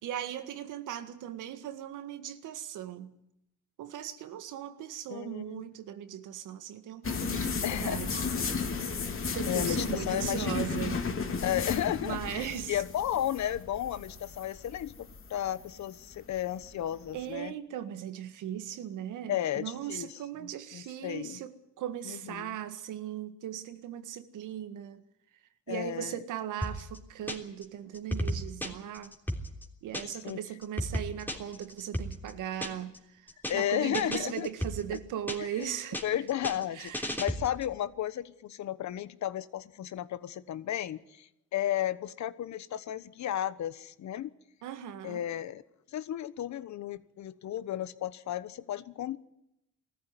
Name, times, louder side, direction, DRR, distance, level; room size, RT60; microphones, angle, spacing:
voice 1, 0.0-3.2 3.8-8.2 9.3-11.1 12.0-12.8 17.1-25.0 25.7-29.1 29.8-36.0 36.7-37.2 44.6-45.2, right 10 dB, 85° right, 1.8 m, -38 dB
voice 2, 5.1-5.7 7.6-8.0 9.5-10.5 11.4-17.5 19.3-20.1 20.4-21.4 22.1-22.5 25.7-26.2 30.2-30.4 33.5-34.5 34.9-35.0 35.6-35.7 36.0-44.3 45.0-45.6 45.9-49.2, left 11 dB, 70° left, 1.2 m, -33 dB
sound 1, 7.0-17.2, left 5 dB, 45° left, 3.2 m, -34 dB
sound 2, 26.6-27.6 27.9-30.3 30.6-33.0 33.3-33.6 33.9-35.6 35.9-37.7, equal, 5° left, 3.3 m, -35 dB
20.0 x 14.5 x 9.7 m
cardioid pair, 90°, 30 cm